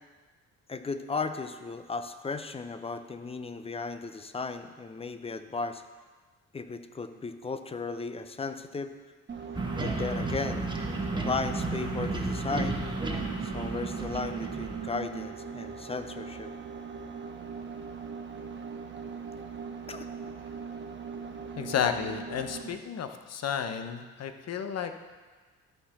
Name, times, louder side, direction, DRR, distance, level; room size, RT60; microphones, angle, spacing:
voice 1, 0.7-5.8 6.5-8.9 9.8-10.7 11.3-12.8 13.4-16.5 19.9-20.1, left 4 dB, 20° left, 10 dB, 0.6 m, -35 dB
sound 1, 9.3-22.8, right 6 dB, 40° right, 1.1 m, -40 dB
sound 2, 9.5-14.9, right 2 dB, 15° right, 1.3 m, -33 dB
voice 2, 21.6-25.0, left 7 dB, 55° left, 8 dB, 0.9 m, -32 dB
13.0 x 4.5 x 5.8 m, 1.4 s
cardioid pair, 90°, 30 cm